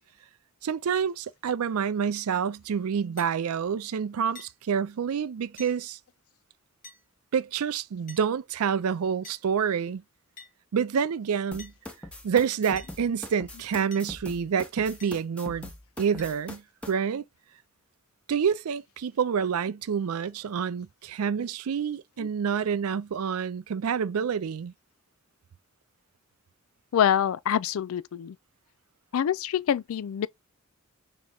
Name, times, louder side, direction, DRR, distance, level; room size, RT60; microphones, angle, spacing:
voice 1, 0.6-6.0 7.3-10.0 10.7-11.7 12.2-15.7 16.0-16.6 16.9-17.2 18.3-24.7, right 7 dB, 80° right, 0.4 m, -28 dB
sound 1, 3.2-3.4 4.4-4.5 5.6-5.8 6.8-7.0 8.1-8.3 9.2-9.4 10.4-10.5 11.6-11.8 12.8-12.9 13.9-14.1 15.0-15.2 16.2-16.3, left 4 dB, 35° left, 0.9 m, -47 dB
sound 2, 11.5-16.9, left 1 dB, 5° left, 0.6 m, -42 dB
voice 2, 26.9-28.4 29.1-30.3, left 9 dB, 75° left, 0.3 m, -25 dB
5.4 x 3.0 x 2.3 m
head